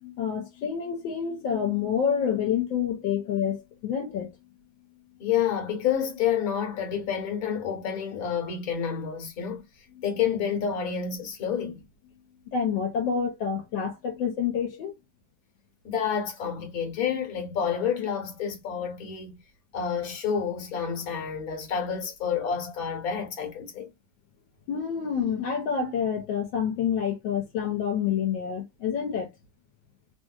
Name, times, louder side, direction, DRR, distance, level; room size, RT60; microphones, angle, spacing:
voice 1, 0.0-4.3 10.0-10.1 12.5-14.9 24.7-29.3, left 7 dB, 80° left, 1.3 m, -28 dB
voice 2, 5.2-9.6 10.0-11.8 15.8-19.4 19.7-23.9, left 8 dB, 55° left, 1.4 m, -29 dB
3.1 x 2.7 x 2.2 m
omnidirectional pair, 2.1 m